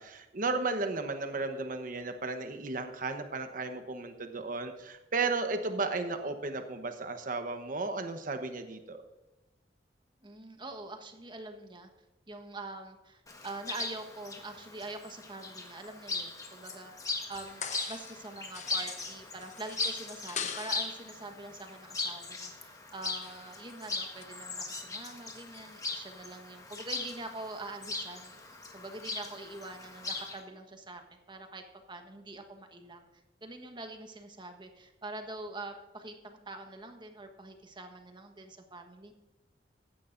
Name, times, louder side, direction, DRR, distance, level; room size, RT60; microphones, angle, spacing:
voice 1, 0.0-9.0, right 3 dB, 50° right, 7 dB, 1.0 m, -34 dB
voice 2, 10.2-11.9 12.3-16.9 17.3-28.3 28.7-33.0 33.4-39.1, right 2 dB, 25° right, 5 dB, 1.3 m, -44 dB
Chirp tweet, 13.3-30.4, left 3 dB, 20° left, 1.4 m, -39 dB
sound 1, 17.4-18.3 18.5-21.0 23.2-23.7 24.2-24.3, left 6 dB, 40° left, 1.0 m, -42 dB
15.5 x 11.5 x 2.6 m, 1.0 s
head